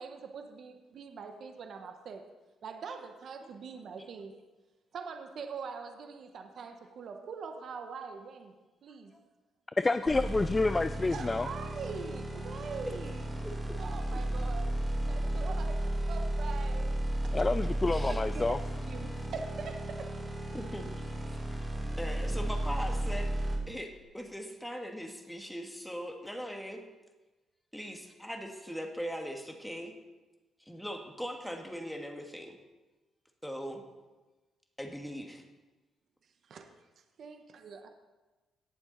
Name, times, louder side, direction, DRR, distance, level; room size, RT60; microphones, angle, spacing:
voice 1, 0.0-2.2 2.6-4.3 4.9-8.5 8.8-9.1 11.1-13.2 13.8-14.8 15.0-17.4 18.1-18.6 18.8-20.1 36.4-36.7 37.2-37.9, right 5 dB, 60° right, 5 dB, 1.2 m, -43 dB
voice 2, 9.8-11.5 17.3-18.6, left 3 dB, 20° left, 12 dB, 0.4 m, -28 dB
sound 1, 10.1-23.6, right 1 dB, 15° right, 3.1 m, -34 dB
voice 3, 13.4-13.8 14.1-14.2 17.9-18.2 20.5-20.9 21.3-21.7 22.0-23.3 23.7-26.8 27.7-29.9 30.6-32.6 33.4-33.8 34.8-35.4, equal, ahead, 3 dB, 1.7 m, -40 dB
18.0 x 7.1 x 4.0 m, 1.2 s
cardioid pair, 90°, 0 cm